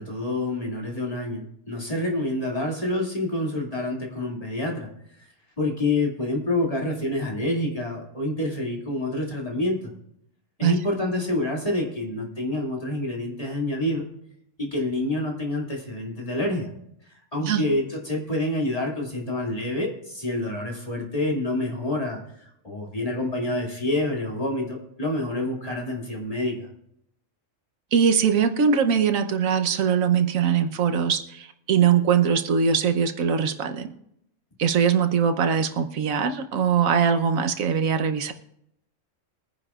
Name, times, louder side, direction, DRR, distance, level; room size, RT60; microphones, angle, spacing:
voice 1, 0.0-4.9 5.2-5.3 5.6-9.9 10.6-14.0 14.6-16.7 17.3-26.7, left 1 dB, 25° left, -2 dB, 2.5 m, -27 dB
voice 2, 27.9-33.9 34.6-38.3, right 7 dB, 90° right, 7 dB, 1.3 m, -22 dB
23.0 x 10.0 x 2.4 m, 0.76 s
omnidirectional pair, 1.4 m